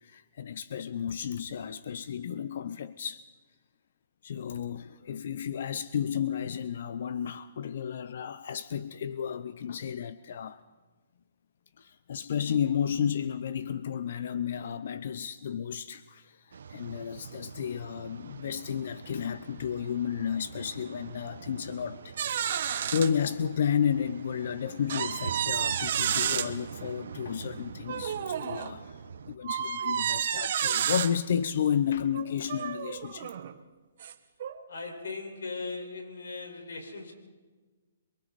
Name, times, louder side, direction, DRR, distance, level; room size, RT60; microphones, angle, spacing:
voice 1, 0.0-3.3 4.2-10.6 11.8-29.0 29.3-33.3, left 8 dB, 60° left, 0.7 m, -32 dB
sound 1, 16.5-29.4, right 6 dB, 75° right, 1.3 m, -45 dB
sound 2, 22.2-23.1 23.7-23.8 24.9-26.5 27.9-28.7 29.4-31.1 32.1-33.5 34.0-34.1 34.4-34.6, right 9 dB, 55° right, 1.2 m, -30 dB
voice 2, 34.7-37.1, left 3 dB, 85° left, 5.0 m, -38 dB
28.0 x 23.0 x 4.2 m
hypercardioid pair, 150°, 0 cm